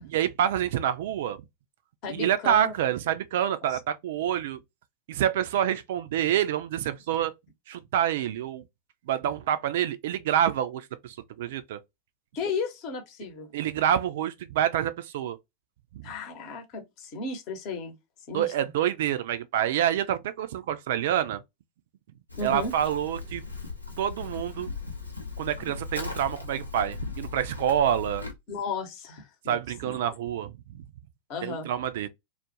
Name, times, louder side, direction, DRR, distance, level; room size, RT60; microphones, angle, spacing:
voice 1, 0.1-1.4 2.1-4.6 5.1-7.3 7.7-8.6 9.1-11.8 13.5-15.4 15.9-16.1 18.3-21.4 22.4-23.4 24.0-24.7 25.4-28.2 29.5-30.8 31.4-32.1, right 10 dB, 55° right, 0.3 m, -27 dB
voice 2, 2.0-2.7 3.5-3.8 12.3-13.5 16.0-18.0 18.3-18.5 22.4-22.7 28.5-30.0 31.3-31.7, left 4 dB, 40° left, 0.9 m, -34 dB
Livestock farm animals working animals, 22.3-28.3, left 4 dB, 85° left, 0.7 m, -38 dB
2.3 x 2.1 x 2.7 m
figure-of-eight pair, 90°, 0 cm